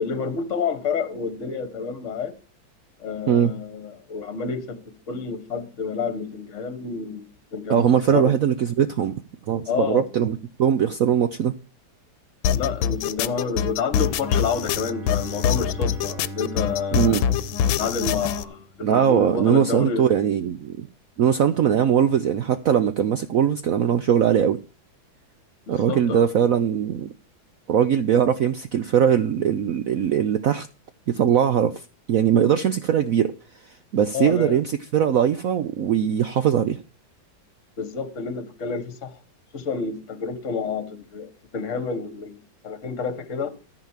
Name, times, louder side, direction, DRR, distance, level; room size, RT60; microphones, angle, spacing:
voice 1, 0.0-2.3 3.0-4.8 5.1-7.9 8.1-8.3 9.7-10.0 12.5-17.2 17.8-20.0 25.7-26.2 34.1-34.6 37.8-39.2 39.5-42.4 42.6-43.5, left 5 dB, 40° left, 1.5 m, -29 dB
voice 2, 7.7-9.1 9.5-11.5 16.9-17.3 18.8-20.9 21.2-24.6 25.7-27.1 27.7-30.7 31.1-31.8 32.1-33.3 33.9-36.8, right 9 dB, 70° right, 0.8 m, -20 dB
sound 1, 12.4-18.4, left 9 dB, 80° left, 1.5 m, -24 dB
Bowed string instrument, 14.0-18.9, right 3 dB, 85° right, 2.2 m, -39 dB
14.0 x 5.0 x 7.3 m
omnidirectional pair, 2.1 m